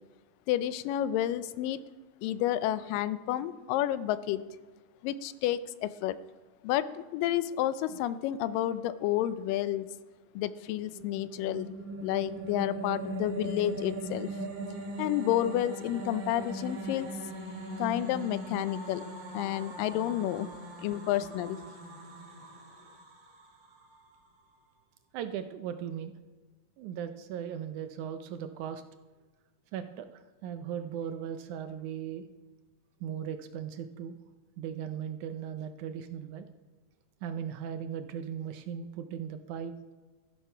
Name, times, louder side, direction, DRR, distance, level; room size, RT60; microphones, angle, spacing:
voice 1, 0.5-1.8 2.2-4.4 5.0-6.2 6.6-9.9 10.4-11.7 12.0-14.3 15.0-17.1 17.8-19.0 19.3-20.5 20.8-21.6, left 12 dB, 85° left, 15 dB, 2.2 m, -30 dB
sound 1, 10.6-24.0, right 1 dB, 40° right, 2.3 m, -40 dB
voice 2, 25.1-26.1 26.8-28.8 29.7-32.3 33.0-34.2 34.6-36.5 37.2-39.7, right 8 dB, 75° right, 9 dB, 1.9 m, -38 dB
13.0 x 11.5 x 5.6 m, 1.3 s
omnidirectional pair, 3.9 m